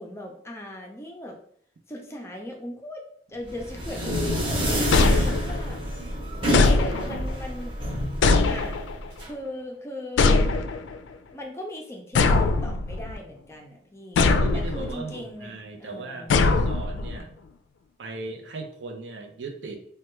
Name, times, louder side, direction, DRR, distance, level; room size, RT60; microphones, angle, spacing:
voice 1, 0.0-1.4 1.9-3.0 3.3-5.8 6.6-7.8 8.4-8.8 9.2-10.4 11.3-14.2 14.5-16.3, left 1 dB, 15° left, 1 dB, 0.4 m, -38 dB
sound 1, 3.5-9.3, equal, 30° right, 0.8 m, -28 dB
sound 2, 4.9-5.8 6.5-7.4 8.2-9.1 10.2-11.0 12.1-13.2 14.2-14.9 16.3-17.2, left 3 dB, 90° left, 0.3 m, -21 dB
voice 2, 14.4-17.4 18.0-19.9, right 3 dB, 90° right, 4 dB, 0.5 m, -38 dB
3.3 x 2.2 x 3.0 m, 0.65 s
head